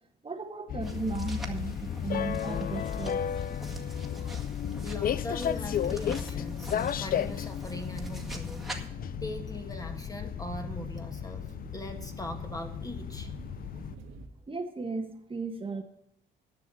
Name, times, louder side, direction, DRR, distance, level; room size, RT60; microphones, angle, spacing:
voice 1, 0.2-3.2 4.2-4.3 14.5-15.8, right 3 dB, 25° right, 5 dB, 1.4 m, -35 dB
sound 1, 0.7-13.9, left 9 dB, 45° left, 0.5 m, -34 dB
sound 2, 0.8-8.9, right 1 dB, ahead, 1.9 m, -43 dB
voice 2, 4.8-8.8 9.2-13.3, left 1 dB, 20° left, 5 dB, 1.8 m, -40 dB
sound 3, 8.9-14.3, right 4 dB, 80° right, 1.5 m, -47 dB
10.5 x 6.2 x 8.3 m, 0.77 s
cardioid pair, 90°, 20 cm